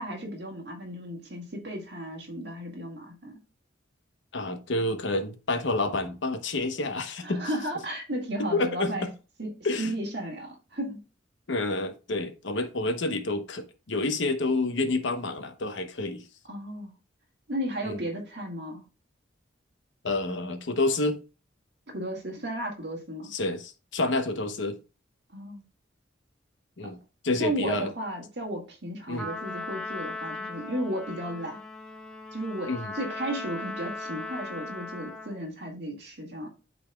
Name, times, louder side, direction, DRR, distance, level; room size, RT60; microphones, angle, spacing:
voice 1, 0.0-3.4 7.2-9.1 9.4-9.5 9.8-11.0 16.5-16.9 17.5-18.8 21.9-23.3 25.3-25.6 26.8-26.9 27.4-31.6 32.3-36.5, right 1 dB, 60° right, 1.9 m, -34 dB
voice 2, 4.3-7.5 8.5-9.1 9.6-9.9 11.5-16.2 17.8-18.0 20.0-21.2 23.3-24.8 26.8-27.0 27.2-27.9 29.1-29.3 32.7-32.9, left 2 dB, 75° left, 0.9 m, -29 dB
Trumpet, 29.2-35.4, left 3 dB, 5° left, 1.0 m, -38 dB
12.0 x 4.1 x 2.3 m
head